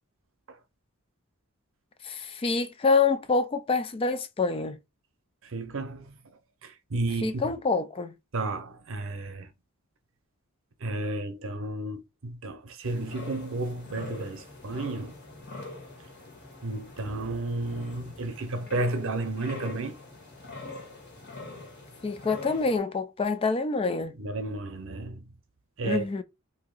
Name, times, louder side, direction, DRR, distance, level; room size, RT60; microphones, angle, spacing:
voice 1, 2.0-4.8 7.2-8.1 22.0-24.1 25.8-26.2, left 4 dB, 25° left, 0.3 m, -26 dB
voice 2, 5.4-6.2 6.6-7.5 8.3-9.5 10.8-15.1 16.6-20.0 24.2-25.3 25.8-26.1, right 2 dB, 65° right, 0.7 m, -32 dB
sound 1, 12.8-22.8, left 3 dB, 55° left, 1.8 m, -44 dB
2.8 x 2.8 x 3.9 m
head